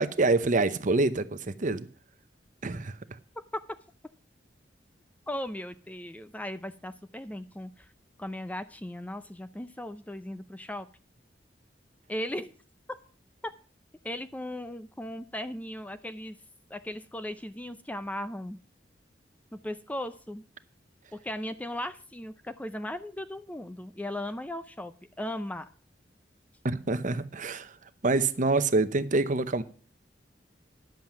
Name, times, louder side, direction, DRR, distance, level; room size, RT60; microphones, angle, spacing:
voice 1, 0.0-1.9 2.6-3.0 26.6-27.7 28.0-29.6, right 3 dB, 45° right, 12 dB, 0.8 m, -26 dB
voice 2, 5.3-7.9 8.2-10.9 12.1-12.5 13.4-13.5 14.0-16.4 16.7-18.6 19.5-20.4 21.1-25.7, left 1 dB, 10° left, 11 dB, 0.5 m, -37 dB
10.5 x 7.6 x 6.0 m, 0.39 s
head